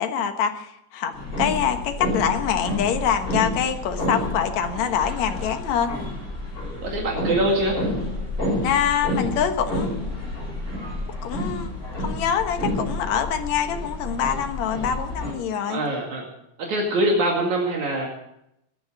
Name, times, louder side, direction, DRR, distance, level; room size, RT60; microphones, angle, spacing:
voice 1, 0.0-5.9 8.6-10.4 11.2-15.8, left 8 dB, 70° left, 6 dB, 2.5 m, -25 dB
sound 1, 1.1-15.3, left 1 dB, 30° left, 6.6 m, -29 dB
voice 2, 6.8-7.8 15.7-16.2 16.6-18.1, right 1 dB, 70° right, -1 dB, 3.7 m, -23 dB
17.5 x 10.5 x 7.2 m, 0.80 s
omnidirectional pair, 3.4 m